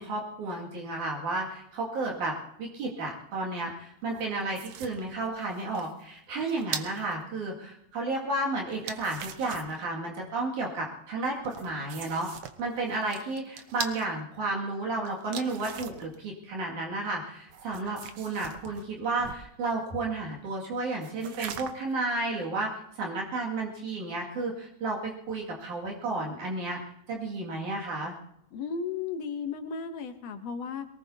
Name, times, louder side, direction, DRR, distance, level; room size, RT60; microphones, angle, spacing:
voice 1, 0.0-12.3 12.6-26.8 27.1-28.2, right 2 dB, 85° right, -2 dB, 3.7 m, -32 dB
sound 1, 4.0-7.1 8.7-9.8 11.2-14.1 15.1-16.1 17.5-19.5 21.0-21.9, right 8 dB, 65° right, 1.8 m, -41 dB
voice 2, 28.5-30.9, left 5 dB, 65° left, 7 dB, 1.9 m, -34 dB
22.5 x 19.5 x 2.8 m, 0.75 s
omnidirectional pair, 3.4 m